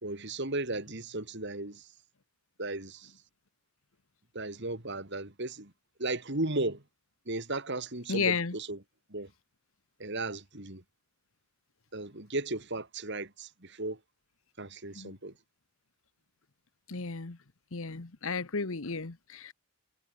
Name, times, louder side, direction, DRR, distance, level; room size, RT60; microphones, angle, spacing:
voice 1, 0.0-1.8 2.6-3.1 4.3-5.7 6.0-6.8 7.3-8.8 9.1-9.3 10.0-10.8 11.9-14.0 14.6-15.3, right 2 dB, 50° right, 3.1 m, -35 dB
voice 2, 8.1-8.6 15.0-15.1 16.9-17.4 17.7-19.5, left 5 dB, 65° left, 1.2 m, -33 dB
head